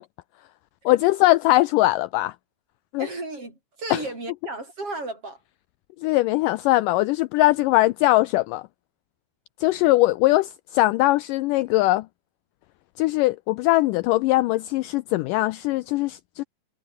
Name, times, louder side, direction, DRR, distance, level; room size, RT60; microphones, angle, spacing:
voice 1, 0.9-2.3 2.9-3.1 3.9-4.0 6.0-8.6 9.6-12.1 13.0-16.4, left 18 dB, 85° left, 1.9 m, -21 dB
voice 2, 3.0-5.4, right 2 dB, 35° right, 9.0 m, -34 dB
omnidirectional pair, 4.3 m